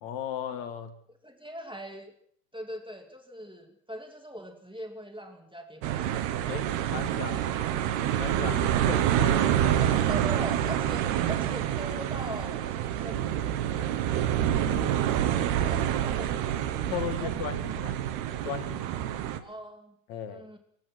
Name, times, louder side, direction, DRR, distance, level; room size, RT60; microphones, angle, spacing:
voice 1, 0.0-0.9 6.5-7.4 8.2-9.9 10.2-10.3 14.6-14.9 16.9-18.0 18.4-18.9 20.1-20.5, left 8 dB, 60° left, 9 dB, 2.2 m, -36 dB
voice 2, 1.2-2.1 2.5-6.3 7.2-7.4 9.8-15.1 15.6-16.4 16.8-17.3 19.4-19.9 20.3-20.6, equal, 5° right, 3 dB, 0.6 m, -42 dB
sound 1, 5.8-19.4, right 11 dB, 75° right, 3.1 m, -27 dB
27.0 x 16.5 x 6.1 m, 0.64 s
omnidirectional pair, 4.8 m